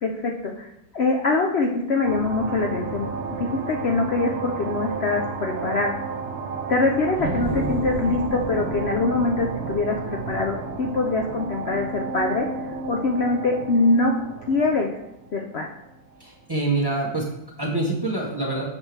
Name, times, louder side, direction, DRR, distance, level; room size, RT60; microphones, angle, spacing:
voice 1, 0.0-0.7 0.9-5.9 6.7-12.5 12.9-14.1 14.5-14.9 15.3-15.7, left 3 dB, 80° left, 2 dB, 0.5 m, -23 dB
sound 1, 2.0-16.2, right 4 dB, 65° right, 1.2 m, -31 dB
voice 2, 16.2-18.6, right 2 dB, 35° right, -3 dB, 0.4 m, -26 dB
8.5 x 6.0 x 3.3 m, 0.84 s
omnidirectional pair, 2.0 m